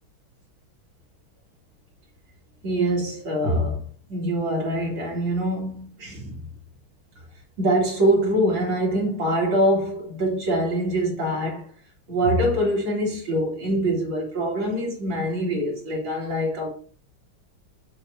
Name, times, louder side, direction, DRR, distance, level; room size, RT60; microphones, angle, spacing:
voice 1, 2.6-3.8 4.1-6.4 7.6-11.7 12.1-16.7, right 1 dB, 65° right, 3.3 m, -24 dB
7.6 x 6.5 x 2.7 m
omnidirectional pair, 2.4 m